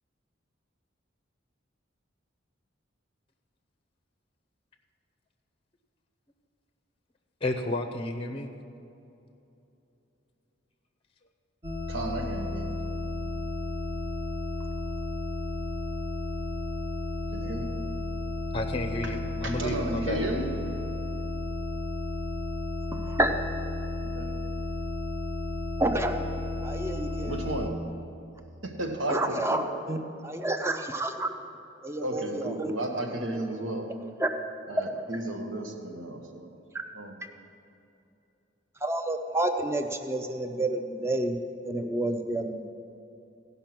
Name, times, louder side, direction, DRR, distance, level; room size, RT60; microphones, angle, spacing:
voice 1, 7.4-8.5 18.5-20.2, left 2 dB, 30° left, 6 dB, 0.6 m, -32 dB
sound 1, 11.6-27.7, left 2 dB, 30° right, 1.0 m, -33 dB
voice 2, 11.9-12.7 17.3-17.7 19.4-20.5 24.0-24.3 27.2-27.8 28.6-29.6 32.0-33.8 34.7-36.6 36.9-37.2, right 1 dB, 80° right, 2 dB, 1.3 m, -33 dB
voice 3, 25.8-26.2 26.6-27.3 29.1-31.3 31.8-32.7 34.2-34.3 38.8-41.4 41.6-42.6, right 1 dB, 15° right, 6 dB, 0.6 m, -29 dB
16.5 x 5.6 x 5.9 m, 2.8 s
head